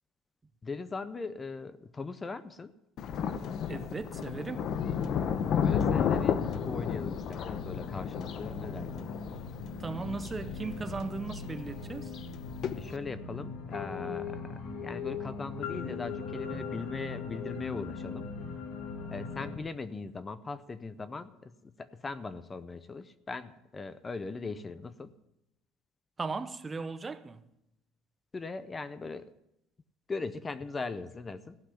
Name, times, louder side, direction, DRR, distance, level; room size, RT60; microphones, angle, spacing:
voice 1, 0.6-2.7 5.6-9.1 12.8-18.3 19.1-25.1 28.3-29.3 30.1-31.6, left 4 dB, 20° left, 0.5 m, -39 dB
Thunder, 3.0-13.0, left 8 dB, 45° left, 0.8 m, -33 dB
voice 2, 3.7-4.7 9.8-12.1 26.2-27.4, right 4 dB, 20° right, 0.7 m, -37 dB
sound 1, 4.1-19.6, left 4 dB, 65° left, 2.6 m, -40 dB
15.0 x 5.9 x 9.8 m
cardioid pair, 135°, 0 cm